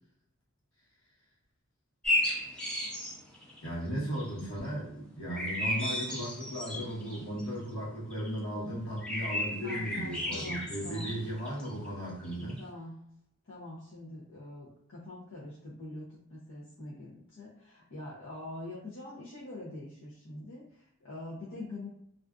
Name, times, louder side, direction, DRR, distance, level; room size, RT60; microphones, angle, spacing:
sound 1, 2.0-3.7 4.2-4.5 5.3-7.5 8.1-8.4 9.0-11.9 12.3-12.6, left 1 dB, 5° left, 0.4 m, -34 dB
voice 1, 3.6-12.6, equal, 75° left, -5 dB, 1.1 m, -36 dB
voice 2, 9.6-11.1 12.6-13.0 13.4-21.9, left 2 dB, 60° left, -8 dB, 0.6 m, -44 dB
2.4 x 2.3 x 2.3 m, 0.75 s
head